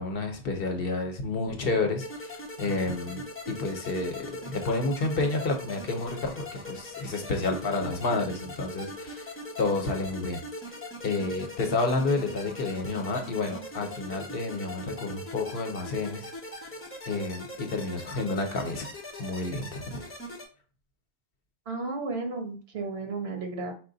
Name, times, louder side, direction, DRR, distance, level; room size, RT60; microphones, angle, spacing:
voice 1, 0.0-9.3 9.6-10.4 11.0-16.3 17.1-18.9 19.2-20.1, left 3 dB, 65° left, 4 dB, 1.0 m, -30 dB
sound 1, 2.0-20.4, left 1 dB, 15° left, 0.6 m, -41 dB
voice 2, 21.7-23.7, right 3 dB, 80° right, 3 dB, 1.2 m, -33 dB
4.8 x 2.1 x 3.9 m, 0.39 s
omnidirectional pair, 1.0 m